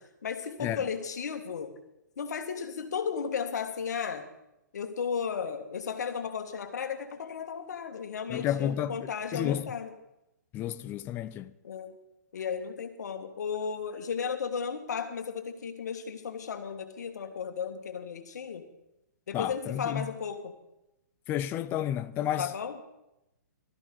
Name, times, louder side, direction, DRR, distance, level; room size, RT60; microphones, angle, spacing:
voice 1, 0.2-1.7 2.2-4.3 4.7-9.9 11.6-12.0 12.3-18.7 19.3-20.5 22.4-22.8, left 6 dB, 65° left, 1.8 m, -34 dB
voice 2, 8.3-9.7 10.5-11.5 19.3-20.1 21.3-22.5, left 11 dB, 20° left, 0.5 m, -31 dB
16.0 x 13.0 x 3.9 m
figure-of-eight pair, 125°, 10 cm